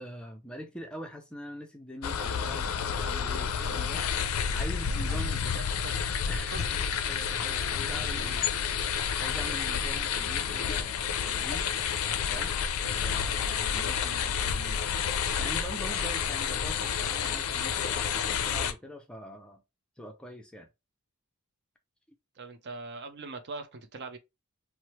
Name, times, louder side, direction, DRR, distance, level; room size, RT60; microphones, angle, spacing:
voice 1, 0.0-5.4 6.3-8.5 8.8-11.7 12.1-12.5 12.9-19.6 20.0-20.7, equal, 5° left, 0.4 m, -44 dB
sound 1, 2.0-18.7, left 7 dB, 70° left, 0.4 m, -30 dB
voice 2, 5.2-6.1 6.5-6.7 8.1-8.4 22.4-24.2, right 3 dB, 50° right, 0.5 m, -42 dB
3.0 x 2.0 x 2.9 m
head